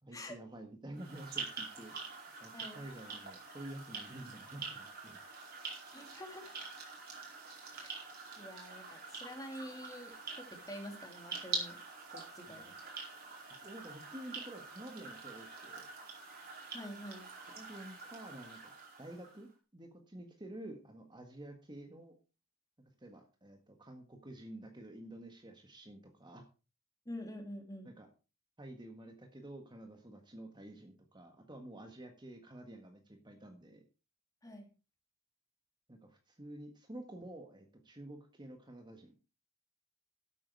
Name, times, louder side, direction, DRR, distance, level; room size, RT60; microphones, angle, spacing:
voice 1, 0.0-1.9 2.4-5.2 12.5-12.7 13.6-15.9 17.5-18.7 19.0-22.1 23.0-26.5 27.8-28.1 28.6-33.8 35.9-39.1, right 1 dB, 20° right, 4 dB, 1.7 m, -50 dB
sound 1, 0.9-19.4, right 4 dB, 50° right, 4.7 m, -46 dB
voice 2, 5.9-6.7 7.7-8.1 8.4-11.8 12.1-12.7 16.7-17.3 27.0-27.9 34.4-34.7, left 1 dB, 15° left, 3 dB, 3.1 m, -47 dB
12.5 x 8.6 x 4.7 m, 0.32 s
head